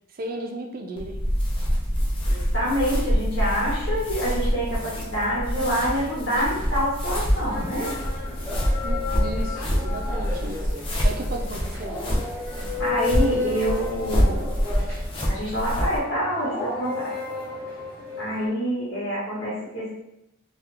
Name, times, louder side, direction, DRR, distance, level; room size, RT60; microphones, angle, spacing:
voice 1, 0.2-1.2 8.8-10.7 11.0-12.0, right 1 dB, 45° right, 3 dB, 0.4 m, -34 dB
sound 1, 1.0-16.0, equal, 25° left, 0.6 m, -26 dB
voice 2, 2.2-7.9 12.8-14.5 15.3-17.1 18.2-19.9, equal, 60° left, -8 dB, 1.3 m, -26 dB
sound 2, 7.4-18.5, left 3 dB, 10° left, 1.4 m, -33 dB
2.9 x 2.4 x 3.4 m, 0.85 s
head